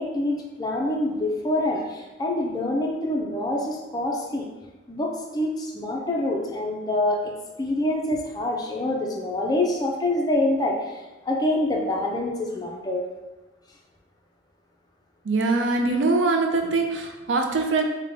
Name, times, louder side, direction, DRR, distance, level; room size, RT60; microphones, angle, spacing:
voice 1, 0.0-4.5 4.9-7.3 7.6-13.0, left 1 dB, 20° left, -1 dB, 0.4 m, -26 dB
voice 2, 15.3-17.8, right 3 dB, 80° right, 3 dB, 0.5 m, -23 dB
3.8 x 2.2 x 3.3 m, 1.1 s
head